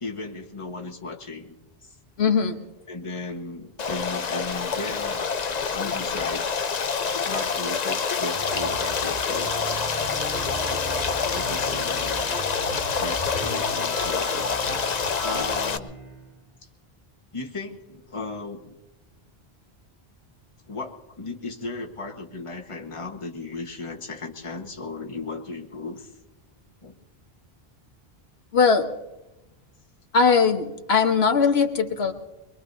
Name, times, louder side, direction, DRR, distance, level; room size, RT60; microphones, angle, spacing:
voice 1, 0.0-1.5 1.8-2.0 2.9-5.2 5.7-6.6 7.2-9.5 11.3-12.4 13.0-14.3 15.2-15.9 17.3-18.7 20.7-26.1 26.8-26.9, left 3 dB, 30° left, 2 dB, 1.4 m, -36 dB
voice 2, 2.2-2.6 28.5-28.9 30.1-32.1, left 5 dB, 80° left, 5 dB, 1.4 m, -20 dB
Stream, 3.8-15.8, left 5 dB, 45° left, 0.7 m, -27 dB
sound 1, 8.3-16.4, right 1 dB, 55° right, 4.9 m, -41 dB
sound 2, 8.5-15.4, right 2 dB, 85° right, 3.7 m, -37 dB
23.0 x 23.0 x 2.7 m, 1.0 s
omnidirectional pair, 1.0 m